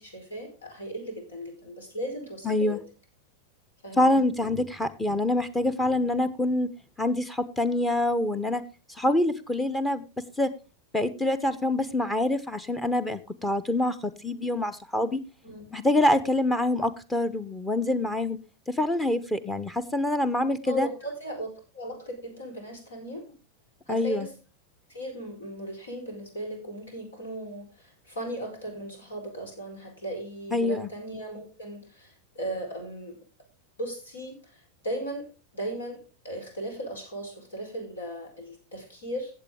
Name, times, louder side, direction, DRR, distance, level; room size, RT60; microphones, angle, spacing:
voice 1, 0.0-2.8 3.8-4.3 15.4-15.7 20.6-23.3 23.9-24.3 24.9-33.1 33.8-35.3 35.5-39.3, right 1 dB, 70° left, 4 dB, 4.7 m, -37 dB
voice 2, 2.4-2.8 4.0-6.7 7.0-8.6 9.0-10.0 10.4-10.5 10.9-15.2 15.7-18.4 18.7-20.9 23.9-24.3 30.5-30.9, left 1 dB, 10° left, 15 dB, 0.9 m, -25 dB
15.0 x 8.2 x 3.7 m, 0.32 s
figure-of-eight pair, 90°, 0 cm